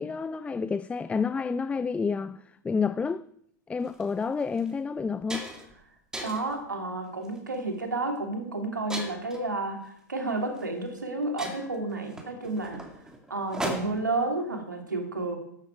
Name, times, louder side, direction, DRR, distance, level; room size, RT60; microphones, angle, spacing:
voice 1, 0.0-3.3 3.7-5.5, left 5 dB, 10° left, 0.4 m, -29 dB
sound 1, 3.8-4.0 4.6-4.7 5.0-5.7 6.1-6.6 7.2-7.5 8.9-9.4 10.6-10.7 11.0-11.1 11.4-14.2, right 1 dB, 5° right, 2.8 m, -37 dB
voice 2, 6.2-12.8 13.3-15.4, right 2 dB, 85° right, 2.8 m, -31 dB
13.5 x 12.0 x 4.6 m
figure-of-eight pair, 90°, 10 cm